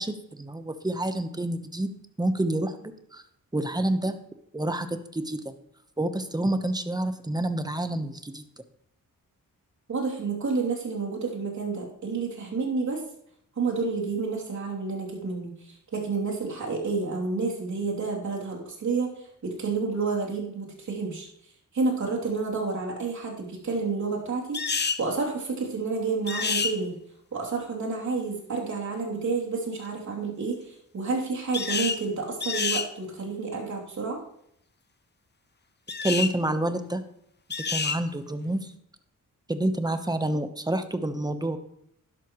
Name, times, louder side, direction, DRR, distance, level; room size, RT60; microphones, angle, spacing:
voice 1, 0.0-1.9 2.2-3.2 3.5-4.1 4.5-5.5 6.0-8.4 36.0-37.0 37.7-38.7 39.5-41.6, right 1 dB, 10° right, 9 dB, 1.0 m, -28 dB
voice 2, 9.9-13.0 13.6-21.3 21.7-26.9 27.3-34.2, right 4 dB, 60° right, -2 dB, 3.1 m, -30 dB
sound 1, 24.5-25.0 26.3-26.7 31.5-32.0 32.4-32.9 35.9-36.3 37.5-38.0, left 5 dB, 30° left, 0.8 m, -28 dB
12.0 x 11.0 x 3.1 m, 0.72 s
cardioid pair, 95°, 33 cm